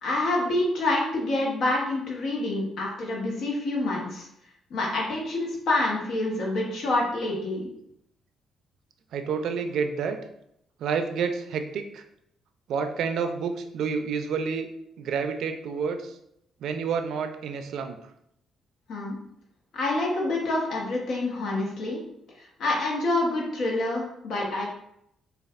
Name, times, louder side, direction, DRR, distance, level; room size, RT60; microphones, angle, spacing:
voice 1, 0.0-4.3 4.7-7.7 18.9-19.2 19.7-22.0 22.4-24.7, left 2 dB, 75° left, -3 dB, 1.1 m, -27 dB
voice 2, 9.1-10.2 10.8-12.0 12.7-14.7 15.0-16.1 16.6-18.0, right 6 dB, 75° right, 7 dB, 0.4 m, -29 dB
5.2 x 2.4 x 2.4 m, 0.77 s
cardioid pair, 90°, 0 cm